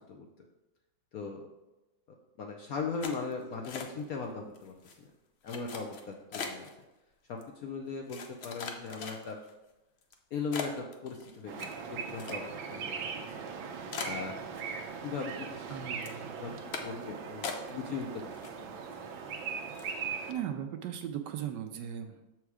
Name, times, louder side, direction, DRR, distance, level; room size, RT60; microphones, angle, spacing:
voice 1, 1.1-1.5 2.4-4.7 5.4-6.7 7.3-9.4 10.3-13.0 13.2-13.3 14.0-14.3 15.0-15.7 16.4-18.3 18.6-18.7, left 4 dB, 65° left, 2 dB, 0.9 m, -38 dB
sound 1, 3.0-4.2 4.5-5.0 5.5-6.7 7.4-7.5 8.1-9.5 10.0-10.1 10.5-12.7 13.0-13.1 13.5-13.6 13.9-15.0 15.3-15.7 16.0-16.2 16.7-17.0 17.4-18.0 18.3-18.9 19.3-19.4 19.7-20.0, left 5 dB, 85° left, 0.5 m, -41 dB
sound 2, 11.5-20.3, right 6 dB, 90° right, 1.5 m, -40 dB
voice 2, 15.7-16.3 20.3-22.2, right 9 dB, 75° right, 7 dB, 1.1 m, -37 dB
7.0 x 4.5 x 4.8 m, 1.0 s
omnidirectional pair, 2.1 m